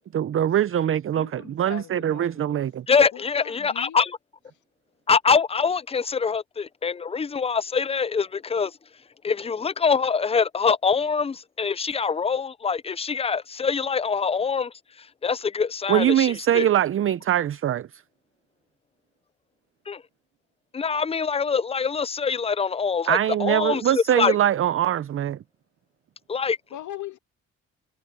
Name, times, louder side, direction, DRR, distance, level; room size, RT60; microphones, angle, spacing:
voice 1, 0.1-2.8 15.9-17.9 23.1-25.4, right 11 dB, 45° right, 0.6 m, -22 dB
voice 2, 1.2-2.6 3.1-4.0 26.7-27.2, left 12 dB, 75° left, 2.3 m, -40 dB
voice 3, 2.9-4.2 5.1-8.7 9.2-16.7 19.9-20.0 20.7-24.3 26.3-26.6, left 5 dB, 20° left, 0.5 m, -24 dB
cardioid pair, 90°, 30 cm